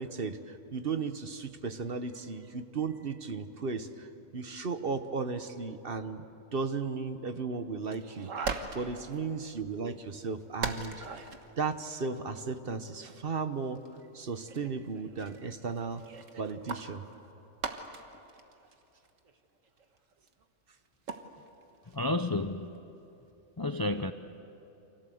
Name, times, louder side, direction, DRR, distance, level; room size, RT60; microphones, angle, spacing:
voice 1, 0.0-6.3 6.5-11.0 11.6-13.8 14.1-16.0 16.4-17.0, right 4 dB, 45° right, 9 dB, 1.3 m, -35 dB
sound 1, 7.8-9.2 9.5-9.6 9.8-9.9 10.6-11.5 12.1-13.2 13.7-14.0 14.5-20.4 20.9-21.6 21.9-22.0 22.5-22.8, right 4 dB, 80° right, 1.8 m, -40 dB
voice 2, 21.9-22.8 23.6-24.1, left 2 dB, 25° left, 9 dB, 0.5 m, -31 dB
29.0 x 25.5 x 7.9 m, 2.9 s
omnidirectional pair, 1.3 m